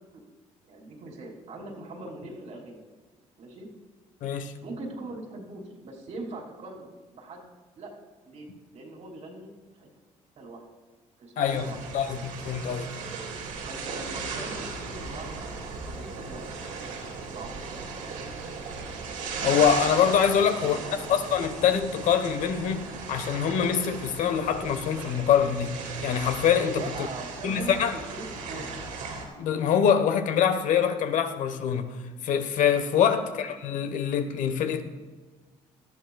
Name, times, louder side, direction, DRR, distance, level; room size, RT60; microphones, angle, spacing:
voice 1, 0.6-2.8 3.4-3.7 4.6-7.4 7.7-7.9 8.2-8.5 8.7-9.5 9.8-9.9 10.4-10.6 11.2-11.8 13.6-15.3 15.8-16.6 17.2-17.7 20.4-21.0 26.7-28.7, right 2 dB, 65° right, 2.6 m, -41 dB
voice 2, 4.2-4.5 11.4-12.9 19.4-20.8 21.1-26.8 27.4-28.0 29.4-31.9 32.2-34.8, left 8 dB, 75° left, 1.2 m, -24 dB
sound 1, 11.4-29.3, right 4 dB, 80° right, 3.4 m, -37 dB
18.5 x 13.0 x 2.4 m
cardioid pair, 80°, 13 cm